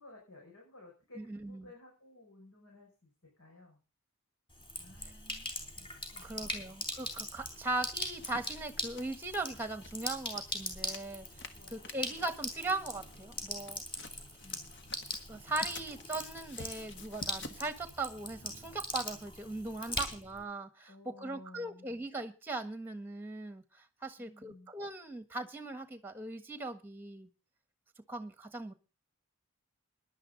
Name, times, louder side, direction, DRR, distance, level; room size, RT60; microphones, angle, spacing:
voice 1, 0.0-1.2 1.5-3.1 3.4-3.8 4.8-5.9 6.1-6.8 11.5-11.7 12.2-12.3 14.4-14.7 19.8-20.0 20.8-21.9 24.2-24.7, left 2 dB, 70° left, -2 dB, 6.0 m, -55 dB
voice 2, 1.1-1.7 5.0-5.1 6.2-13.8 15.3-27.3 28.1-28.7, right 2 dB, 10° right, 9 dB, 1.4 m, -39 dB
Sink (filling or washing), 4.5-20.4, left 1 dB, 25° left, 4.0 m, -41 dB
sound 1, 8.2-17.7, left 3 dB, 50° left, 1.5 m, -52 dB
18.0 x 11.0 x 4.0 m, 0.32 s
head